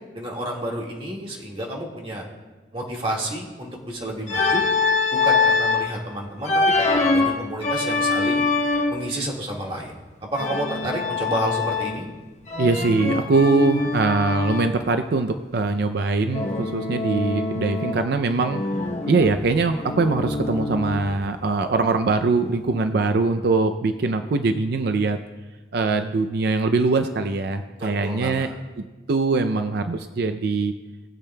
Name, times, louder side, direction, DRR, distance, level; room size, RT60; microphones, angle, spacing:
voice 1, 0.1-2.3 2.7-4.6 5.1-8.5 8.9-9.9 10.2-12.1 27.8-28.5, right 1 dB, 30° right, -2 dB, 1.8 m, -30 dB
Organ, 4.3-5.9 6.4-9.1 10.4-12.1 12.5-14.8 16.3-18.1 18.4-21.2, left 3 dB, 40° left, 1.0 m, -24 dB
voice 2, 12.6-18.6 19.1-25.2 25.7-28.5 29.1-30.7, right 3 dB, 60° right, 8 dB, 0.5 m, -22 dB
18.5 x 8.3 x 2.2 m, 1.2 s
head